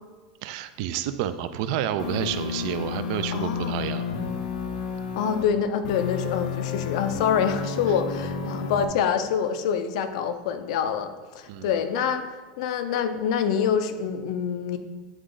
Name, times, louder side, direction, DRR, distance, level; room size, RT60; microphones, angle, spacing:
voice 1, 0.4-4.0 11.5-11.7, right 10 dB, 45° right, 11 dB, 0.3 m, -29 dB
sound 1, 2.0-5.5 5.8-8.8, left 6 dB, 90° left, 0.7 m, -31 dB
voice 2, 3.3-3.7 5.2-14.8, left 7 dB, 55° left, 9 dB, 0.5 m, -26 dB
8.0 x 3.7 x 3.8 m, 1.3 s
supercardioid pair, 180°, 4 cm